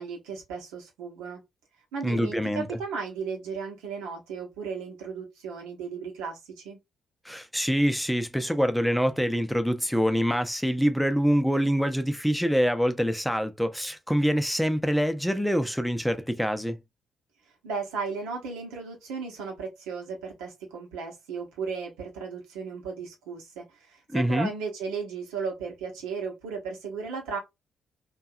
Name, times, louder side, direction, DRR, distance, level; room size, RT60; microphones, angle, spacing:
voice 1, 0.0-1.4 1.9-6.8 17.6-27.4, right 5 dB, 75° right, 0.8 m, -35 dB
voice 2, 2.0-2.8 7.2-16.8 24.1-24.5, equal, ahead, 0.6 m, -25 dB
2.7 x 2.3 x 2.4 m
figure-of-eight pair, 40°, 0 cm